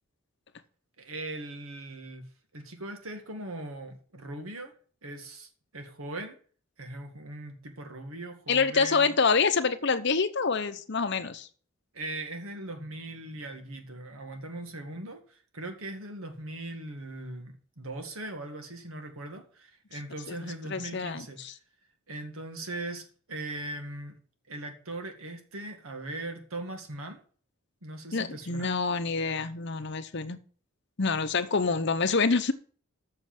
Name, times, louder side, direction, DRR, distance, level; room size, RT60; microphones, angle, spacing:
voice 1, 1.0-2.3 2.5-4.7 5.0-6.4 6.8-9.1 11.9-21.4 22.1-24.2 24.5-27.2 27.8-28.7, right 2 dB, 80° right, 5 dB, 2.0 m, -40 dB
voice 2, 8.5-11.5 20.3-20.4 20.7-21.5 28.1-30.4 31.0-32.5, left 4 dB, 55° left, 10 dB, 0.9 m, -26 dB
7.8 x 6.5 x 7.6 m, 0.44 s
head